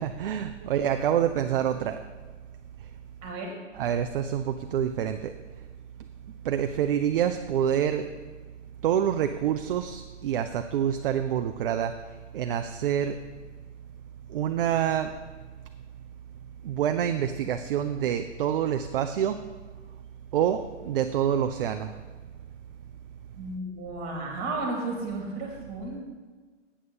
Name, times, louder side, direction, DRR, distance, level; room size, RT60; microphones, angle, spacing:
voice 1, 0.0-2.0 3.8-5.3 6.4-8.1 8.8-11.9 12.3-13.2 14.3-15.1 16.6-19.4 20.3-21.9, right 9 dB, 50° right, 7 dB, 0.5 m, -27 dB
voice 2, 3.2-3.6 23.4-26.0, right 2 dB, 25° right, 0 dB, 2.7 m, -33 dB
8.6 x 7.7 x 5.4 m, 1.4 s
hypercardioid pair, 135°, 37 cm